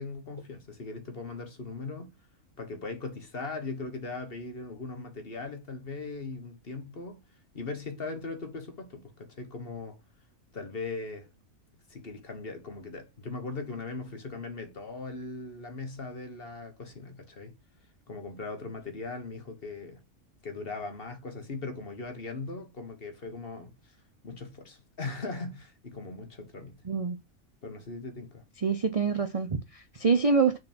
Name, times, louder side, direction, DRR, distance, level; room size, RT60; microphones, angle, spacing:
voice 1, 0.0-2.1 2.6-7.2 7.5-10.0 10.5-11.3 11.9-17.6 18.1-20.0 20.4-23.9 24.2-26.8 27.6-28.4, left 3 dB, 45° left, 1.5 m, -39 dB
voice 2, 26.8-27.2 28.6-30.6, right 5 dB, 40° right, 0.5 m, -26 dB
6.4 x 4.1 x 4.3 m
omnidirectional pair, 1.4 m